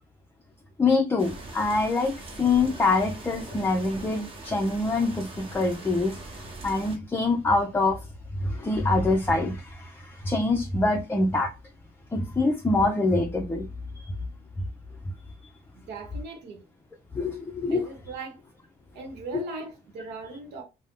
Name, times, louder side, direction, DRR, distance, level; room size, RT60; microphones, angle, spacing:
voice 1, 0.8-6.2 6.6-8.0 8.4-11.5 12.1-13.7 13.9-14.1 17.1-17.9, left 3 dB, 15° left, 0.4 m, -25 dB
sound 1, 1.2-7.0, right 2 dB, 35° right, 0.9 m, -42 dB
voice 2, 15.7-16.6 17.7-18.4 18.9-20.6, right 3 dB, 85° right, 0.9 m, -38 dB
2.6 x 2.1 x 3.5 m
cardioid pair, 110°, 17 cm